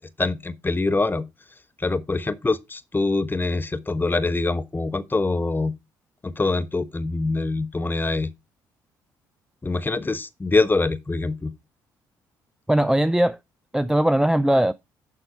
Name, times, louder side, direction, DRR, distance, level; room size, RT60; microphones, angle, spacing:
voice 1, 0.2-1.3 1.8-5.7 6.2-8.3 9.6-11.5, left 3 dB, 20° left, 1.1 m, -24 dB
voice 2, 12.7-13.4 13.7-14.7, right 1 dB, 5° right, 0.4 m, -19 dB
12.0 x 4.2 x 4.5 m
hypercardioid pair, 55°, 9 cm